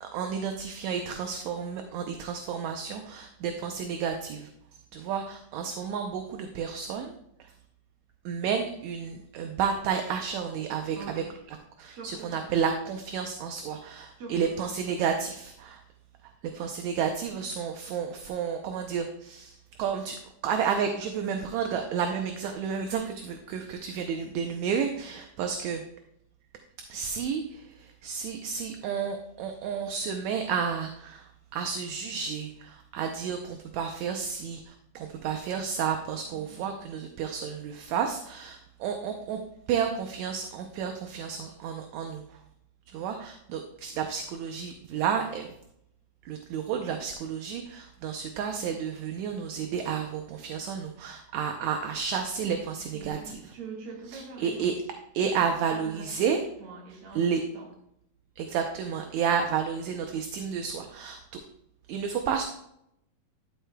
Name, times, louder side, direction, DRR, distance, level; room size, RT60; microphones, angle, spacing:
voice 1, 0.0-4.5 4.9-7.1 7.4-7.5 8.3-15.8 16.4-25.8 26.9-39.4 39.7-42.4 42.9-45.5 46.3-53.4 54.1-54.8 55.1-56.4 57.1-57.4 58.4-61.4 61.9-62.4, right 7 dB, 75° right, 5 dB, 1.9 m, -31 dB
voice 2, 11.9-12.5 14.2-14.5 36.3-36.6 52.9-54.7 55.2-55.4 55.7-56.1 56.6-57.3 57.5-57.7, right 4 dB, 50° right, 0 dB, 2.5 m, -43 dB
12.5 x 7.9 x 2.2 m, 0.78 s
omnidirectional pair, 3.5 m